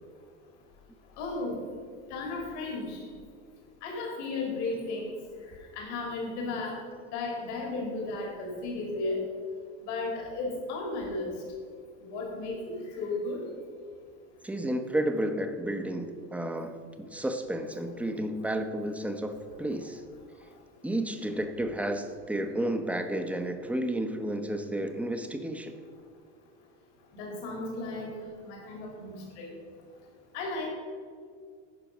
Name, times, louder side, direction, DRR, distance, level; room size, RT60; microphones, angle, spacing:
voice 1, 1.2-1.6 2.1-3.0 3.8-5.1 5.7-6.8 7.1-9.2 9.9-11.3 12.0-13.4 27.1-28.1 28.4-29.5 30.3-30.7, left 3 dB, 70° left, -1 dB, 2.5 m, -34 dB
voice 2, 14.4-20.0 20.8-25.8, right 1 dB, 5° right, 7 dB, 0.8 m, -32 dB
10.5 x 5.0 x 5.1 m, 2.1 s
hypercardioid pair, 90°, 34 cm